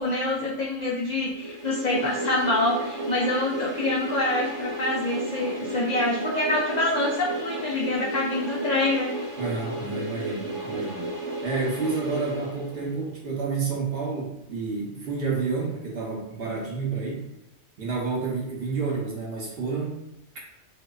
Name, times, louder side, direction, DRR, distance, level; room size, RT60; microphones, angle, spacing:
voice 1, 0.0-9.2, left 2 dB, 70° left, -4 dB, 0.4 m, -26 dB
sound 1, 1.3-13.1, right 2 dB, 25° right, 0.9 m, -33 dB
voice 2, 9.4-11.1 11.4-17.3 17.8-20.1, right 4 dB, 60° right, -3 dB, 0.8 m, -30 dB
2.7 x 2.1 x 2.2 m, 0.90 s
omnidirectional pair, 1.3 m